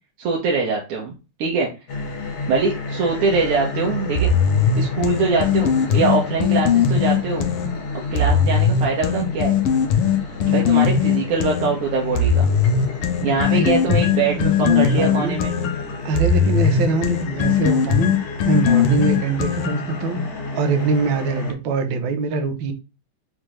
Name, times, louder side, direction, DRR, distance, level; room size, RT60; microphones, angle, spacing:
voice 1, 0.2-1.1 1.4-1.7 2.5-4.3 4.8-7.5 8.1-9.6 10.5-12.5 13.2-15.5, right 4 dB, 85° right, 1.7 m, -23 dB
sound 1, 1.9-21.5, left 3 dB, 70° left, 0.6 m, -31 dB
sound 2, 4.2-7.7 8.2-11.7 12.2-20.0, left 6 dB, 90° left, 1.6 m, -19 dB
voice 2, 8.2-8.5 10.5-10.9 13.3-15.4 16.0-20.2 20.5-22.7, right 4 dB, 70° right, 1.2 m, -24 dB
5.4 x 2.0 x 3.1 m
omnidirectional pair, 2.4 m